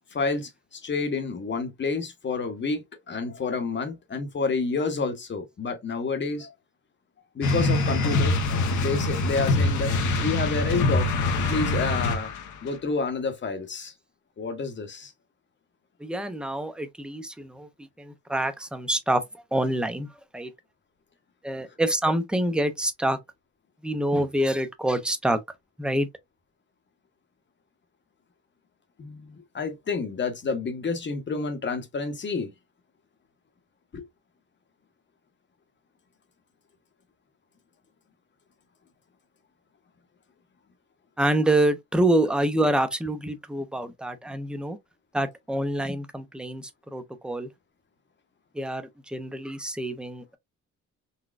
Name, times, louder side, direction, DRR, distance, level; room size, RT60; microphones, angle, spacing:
voice 1, 0.1-6.5 7.3-9.9 10.2-11.1 11.5-12.3 12.6-13.9 14.4-15.1 29.0-32.5 33.9-34.0, left 4 dB, 40° left, 1.0 m, -29 dB
sound 1, 7.4-12.6, left 2 dB, 75° left, 0.9 m, -24 dB
voice 2, 16.0-19.2 19.5-20.1 20.3-20.5 21.4-23.2 23.8-25.4 25.8-26.1 41.2-44.8 45.1-47.5 48.5-50.4, right 1 dB, 5° right, 0.5 m, -26 dB
4.0 x 2.2 x 2.4 m
cardioid pair, 90°, 30 cm